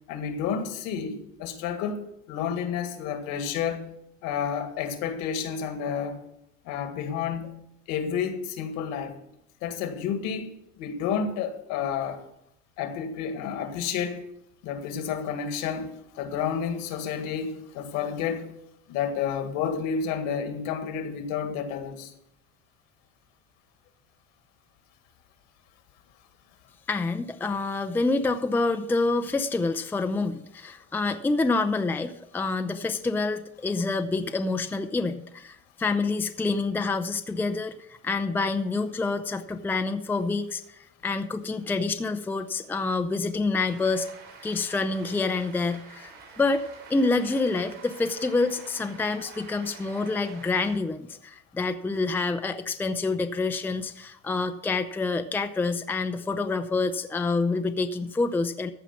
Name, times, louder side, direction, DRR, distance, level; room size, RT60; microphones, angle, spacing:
voice 1, 0.1-2.0 2.3-3.9 4.2-6.2 6.6-7.5 7.9-9.2 9.6-12.2 12.8-14.2 14.6-18.5 18.9-22.1, left 7 dB, 70° left, 7 dB, 1.9 m, -30 dB
voice 2, 26.9-37.7 38.0-40.6 41.0-44.1 44.4-46.1 46.4-58.7, left 3 dB, 5° left, 8 dB, 0.5 m, -27 dB
Cheering / Applause, 43.7-50.8, right 5 dB, 80° right, 5.3 m, -47 dB
14.5 x 4.9 x 7.2 m, 0.78 s
supercardioid pair, 120°, 31 cm